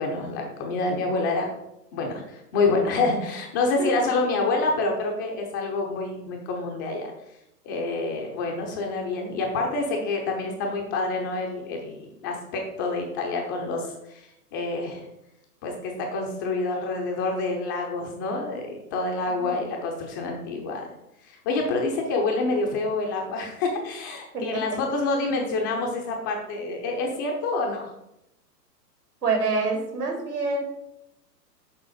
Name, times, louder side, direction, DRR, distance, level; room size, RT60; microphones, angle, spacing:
voice 1, 0.0-1.5 1.9-7.1 7.6-15.0 15.6-20.9 21.3-27.9, left 3 dB, 15° left, 1 dB, 0.5 m, -27 dB
voice 2, 24.3-24.8 29.2-30.6, right 3 dB, 65° right, 1 dB, 3.1 m, -26 dB
6.9 x 5.3 x 5.1 m, 0.87 s
figure-of-eight pair, 115°, 49 cm